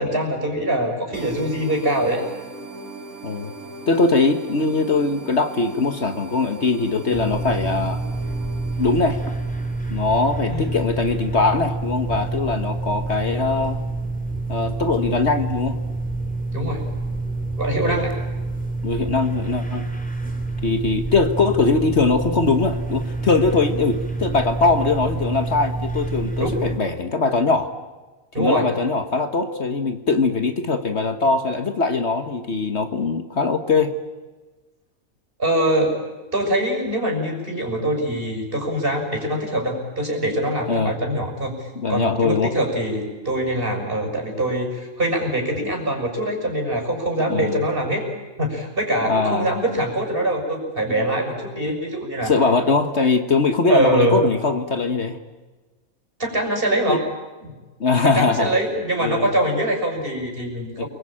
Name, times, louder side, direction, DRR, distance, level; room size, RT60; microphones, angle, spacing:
voice 1, 0.0-2.2 10.5-10.7 16.5-16.8 17.6-18.1 26.4-26.6 28.3-28.7 35.4-36.0 36.3-48.1 48.4-52.3 53.7-54.2 56.2-57.0 57.4-57.5 58.0-60.9, right 1 dB, 40° right, 2 dB, 6.3 m, -23 dB
sound 1, 1.1-10.5, right 2 dB, 85° right, 3.9 m, -39 dB
voice 2, 3.9-8.0 8.8-9.2 9.9-13.8 14.5-15.8 18.8-19.9 20.6-27.7 28.4-33.9 40.7-40.9 41.8-42.5 47.3-47.6 49.0-49.5 52.2-55.2 56.9-57.0 57.8-58.5 59.0-59.3 60.8-60.9, left 3 dB, 50° left, 8 dB, 1.6 m, -21 dB
sound 2, 7.1-26.8, right 2 dB, 5° left, 2.8 m, -27 dB
29.0 x 22.0 x 8.8 m, 1.2 s
omnidirectional pair, 1.5 m